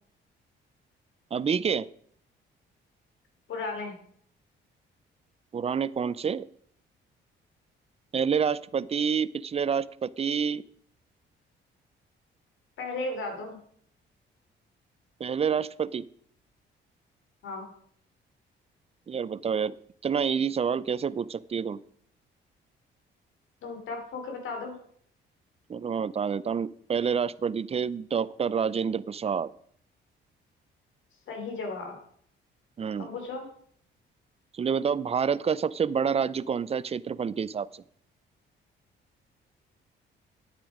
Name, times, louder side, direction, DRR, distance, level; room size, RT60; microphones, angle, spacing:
voice 1, 1.3-1.9 5.5-6.5 8.1-10.6 15.2-16.1 19.1-19.7 20.0-21.8 25.7-29.5 32.8-33.1 34.5-37.8, right 6 dB, 30° right, 19 dB, 0.5 m, -28 dB
voice 2, 3.5-4.0 12.8-13.6 17.4-17.7 23.6-24.7 31.3-32.0 33.0-33.5, left 3 dB, 75° left, 4 dB, 3.2 m, -35 dB
10.0 x 9.1 x 5.0 m, 0.62 s
cardioid pair, 90°, 20 cm